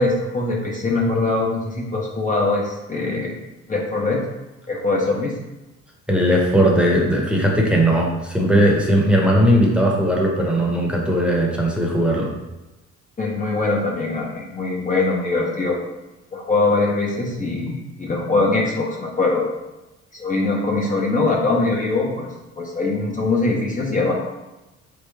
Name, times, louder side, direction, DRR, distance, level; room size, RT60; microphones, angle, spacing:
voice 1, 0.0-3.4 3.7-4.2 4.7-5.4 13.2-15.8 16.3-19.4 20.1-22.3 22.6-24.2, left 3 dB, 25° left, -3 dB, 0.8 m, -22 dB
voice 2, 6.1-12.3, equal, 5° right, -2 dB, 1.0 m, -18 dB
3.9 x 3.4 x 3.4 m, 1.0 s
cardioid pair, 90°, 30 cm